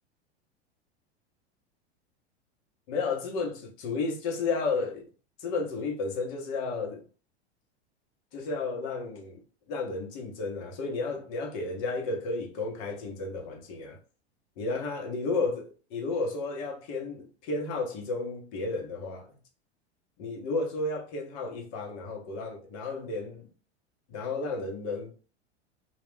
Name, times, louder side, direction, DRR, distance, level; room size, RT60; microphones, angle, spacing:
voice 1, 2.9-5.1 5.4-7.0 8.3-9.4 9.7-14.0 14.6-19.3 20.2-23.5 24.1-25.1, left 3 dB, 50° left, 0.9 m, -32 dB
2.3 x 2.2 x 3.3 m
hypercardioid pair, 95°, 34 cm